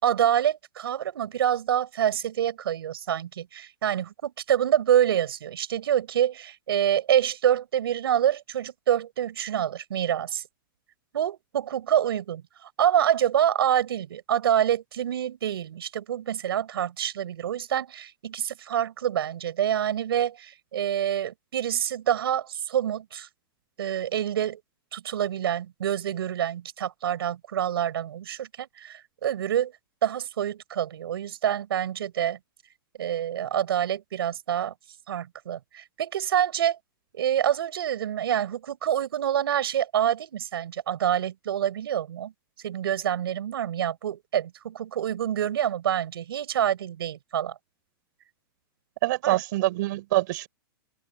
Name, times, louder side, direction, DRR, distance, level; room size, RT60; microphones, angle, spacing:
voice 1, 0.0-10.4 11.1-23.3 23.8-24.6 24.9-29.7 30.0-32.4 33.0-34.7 35.1-36.8 37.1-42.3 42.6-47.6 49.2-49.4, right 10 dB, 85° right, 5.4 m, -26 dB
voice 2, 49.0-50.5, right 17 dB, 55° right, 6.3 m, -25 dB
supercardioid pair, 155°, 12 cm